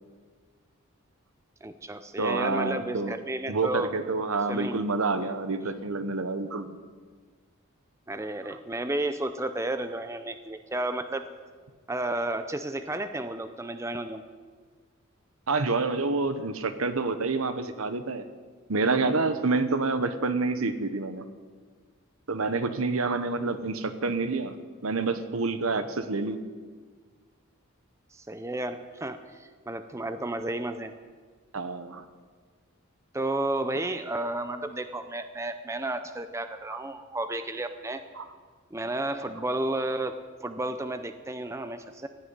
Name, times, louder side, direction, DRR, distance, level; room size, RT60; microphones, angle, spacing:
voice 1, 1.6-3.9 4.5-4.8 8.1-11.3 11.9-14.2 28.1-30.9 33.1-38.0 38.7-40.1 40.4-42.1, right 2 dB, 15° right, 9 dB, 0.5 m, -32 dB
voice 2, 2.2-3.2 3.5-6.8 15.5-18.3 18.7-21.3 22.3-24.6 24.8-26.4 31.5-32.0 36.7-36.8 38.2-38.3, right 3 dB, 75° right, 10 dB, 1.0 m, -28 dB
15.5 x 6.9 x 9.5 m, 1.5 s
head